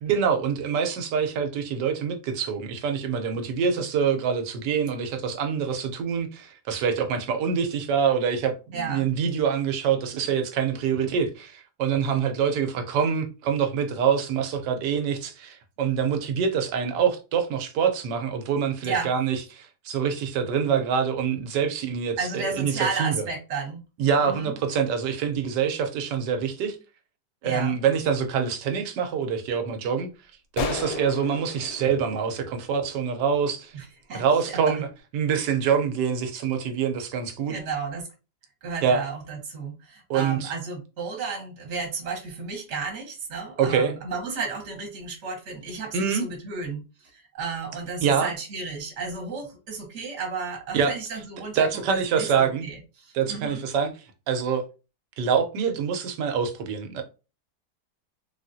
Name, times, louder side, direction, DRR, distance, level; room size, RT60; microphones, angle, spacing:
voice 1, 0.0-23.2 24.0-26.8 27.4-30.1 30.5-33.7 34.1-34.9 35.1-37.6 38.8-39.0 40.1-40.5 43.6-43.9 45.9-46.2 48.0-48.3 50.7-50.9 51.5-52.7 53.1-53.9 54.3-54.6 55.2-57.0, right 7 dB, 80° right, 1.3 m, -25 dB
voice 2, 8.7-9.1 18.8-19.1 22.2-23.8 24.2-24.5 27.4-27.7 33.7-34.6 37.5-38.1 38.6-53.6, right 4 dB, 45° right, 1.2 m, -33 dB
sound 1, 30.6-33.1, left 6 dB, 70° left, 1.0 m, -34 dB
3.5 x 2.4 x 2.6 m
omnidirectional pair, 1.9 m